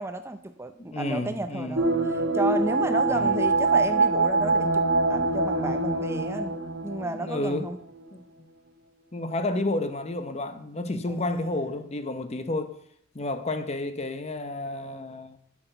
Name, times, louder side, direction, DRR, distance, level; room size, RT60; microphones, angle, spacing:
voice 1, 0.0-4.8 5.1-6.5 6.8-7.8 11.1-11.6, right 2 dB, 15° right, 0.5 m, -32 dB
voice 2, 0.8-1.8 3.1-3.4 7.0-7.7 8.1-8.2 9.1-12.8 13.1-15.4, left 2 dB, 35° left, 0.8 m, -31 dB
sound 1, 1.8-7.7 8.0-8.1, right 3 dB, 70° right, 1.1 m, -24 dB
8.4 x 6.1 x 6.6 m
head